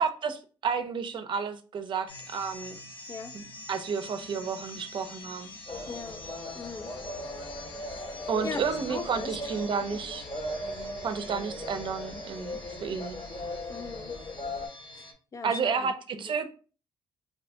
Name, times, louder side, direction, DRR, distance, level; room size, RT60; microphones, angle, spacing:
voice 1, 0.0-2.8 3.3-5.5 8.3-10.3 11.0-13.2 15.4-16.4, right 6 dB, 55° right, 0.5 m, -31 dB
sound 1, 2.1-15.1, left 2 dB, 50° left, 1.0 m, -46 dB
sound 2, 5.7-14.7, left 1 dB, 75° left, 1.5 m, -38 dB
voice 2, 5.9-6.3 6.5-6.9 7.9-9.9 11.4-11.5 13.7-14.1 14.9-16.3, left 5 dB, 35° left, 0.3 m, -41 dB
2.6 x 2.6 x 3.3 m
cardioid pair, 90°, 10 cm